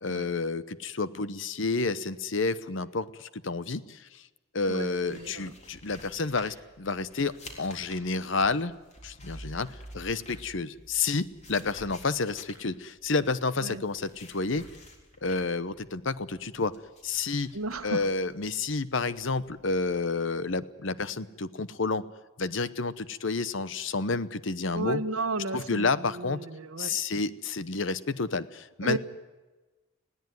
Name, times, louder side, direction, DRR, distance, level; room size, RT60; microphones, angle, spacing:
voice 1, 0.0-4.2 4.5-8.7 9.0-14.6 15.2-16.7 17.0-17.5 17.8-22.0 22.4-25.0 25.5-26.4 26.8-29.0, left 3 dB, 65° left, 15 dB, 0.9 m, -30 dB
voice 2, 4.7-5.5 13.6-13.8 17.5-18.1 24.7-27.0 28.8-29.0, right 3 dB, 85° right, 11 dB, 1.3 m, -34 dB
sound 1, 5.1-20.0, left 2 dB, 30° left, 3.7 m, -53 dB
sound 2, 8.9-11.6, right 1 dB, 10° right, 1.4 m, -47 dB
20.5 x 17.0 x 9.4 m, 1.2 s
head